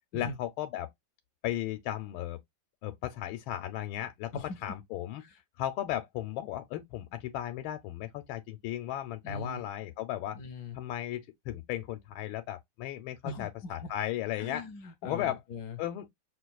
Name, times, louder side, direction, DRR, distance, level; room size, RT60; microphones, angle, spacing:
voice 1, 0.1-0.9 1.4-2.4 2.8-5.2 5.6-10.4 10.7-14.6 15.0-15.4 15.8-16.1, left 12 dB, 90° left, 1.4 m, -35 dB
voice 2, 9.2-9.7 10.3-10.8 13.2-13.9 14.4-15.8, left 3 dB, 70° left, 1.0 m, -41 dB
6.2 x 2.4 x 2.2 m
omnidirectional pair, 2.2 m